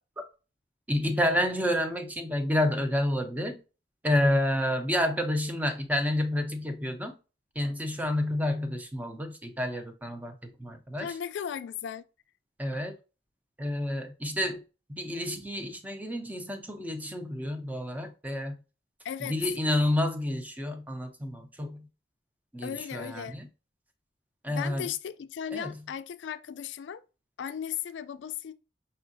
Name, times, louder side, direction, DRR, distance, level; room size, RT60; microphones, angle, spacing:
voice 1, 0.9-3.6 4.0-7.1 7.6-11.1 12.6-12.9 13.6-14.6 14.9-18.6 19.3-21.9 22.5-23.5 24.4-24.9 25.5-25.7, left 1 dB, 10° right, 0.6 m, -29 dB
voice 2, 11.0-12.0 19.0-19.5 22.6-23.4 24.5-27.0 27.4-28.5, left 8 dB, 75° left, 0.3 m, -36 dB
5.4 x 3.6 x 2.6 m
head